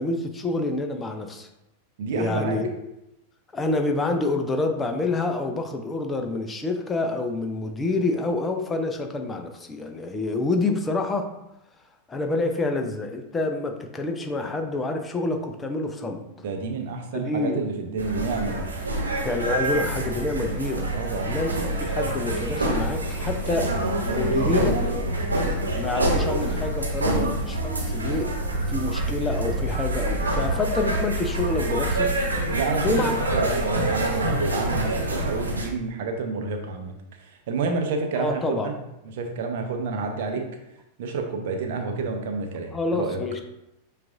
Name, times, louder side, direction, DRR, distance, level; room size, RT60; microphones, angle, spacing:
voice 1, 0.0-1.5 2.1-2.7 3.5-11.3 12.1-16.2 17.1-17.6 19.2-20.9 21.3-21.5 21.8-23.7 24.0-24.8 25.7-28.3 28.7-32.1 32.8-33.2 38.2-38.7 42.7-43.4, left 2 dB, 15° left, 4 dB, 0.5 m, -27 dB
voice 2, 2.0-2.6 16.4-18.6 20.9-21.4 27.0-27.4 32.5-36.9 37.2-38.7 39.0-40.5 41.0-43.2, right 4 dB, 55° right, 3 dB, 0.6 m, -29 dB
sound 1, 18.0-35.7, right 1 dB, 80° right, 1.0 m, -26 dB
7.3 x 2.5 x 2.5 m, 0.86 s
figure-of-eight pair, 90°, 0 cm